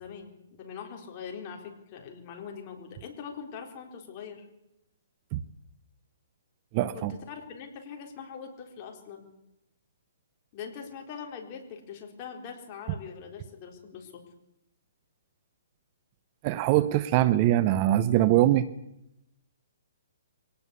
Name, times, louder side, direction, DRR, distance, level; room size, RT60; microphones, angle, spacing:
voice 1, 0.0-4.5 6.9-9.3 10.5-14.2, left 6 dB, 30° left, 2 dB, 4.1 m, -42 dB
voice 2, 6.7-7.1 16.4-18.7, right 13 dB, 30° right, 16 dB, 0.8 m, -22 dB
23.5 x 18.5 x 8.3 m, 0.85 s
hypercardioid pair, 165°, 0 cm